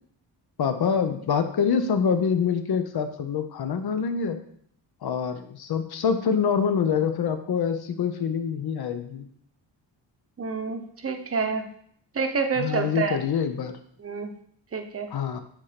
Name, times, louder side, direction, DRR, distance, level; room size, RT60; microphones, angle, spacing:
voice 1, 0.6-4.4 5.0-9.3 12.6-13.8 15.1-15.4, left 6 dB, 55° left, 8 dB, 0.8 m, -25 dB
voice 2, 10.4-11.7 12.1-13.2 14.0-14.3 14.7-15.1, right 5 dB, 30° right, 6 dB, 0.8 m, -28 dB
8.3 x 3.3 x 5.8 m, 0.65 s
cardioid pair, 125°, 44 cm